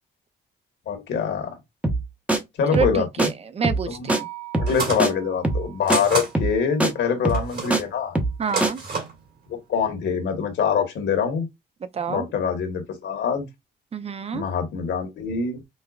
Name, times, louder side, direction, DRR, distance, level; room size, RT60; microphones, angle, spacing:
voice 1, 0.9-1.5 2.6-3.3 3.9-4.1 4.6-8.2 9.5-11.5 12.1-13.5 14.3-15.6, left 6 dB, 65° left, 1.3 m, -24 dB
sound 1, 1.8-2.0 2.3-2.4 2.7-2.9 3.2-3.3 3.6-3.8 4.1-4.2 4.5-4.7 5.0-5.1 5.4-5.6 5.9-6.0 6.3-6.5 6.8-6.9 7.2-7.8 8.1-8.4 8.6-8.7, right 2 dB, 5° right, 0.8 m, -22 dB
voice 2, 2.7-4.3 8.4-8.8 11.9-12.3 13.9-14.5, right 6 dB, 30° right, 0.5 m, -28 dB
sound 2, 4.1-8.3, right 17 dB, 70° right, 1.1 m, -43 dB
sound 3, 4.7-5.1 5.9-6.3 7.3-7.9 8.4-9.2, right 4 dB, 55° right, 2.2 m, -29 dB
5.3 x 2.1 x 2.4 m
cardioid pair, 90°, 20 cm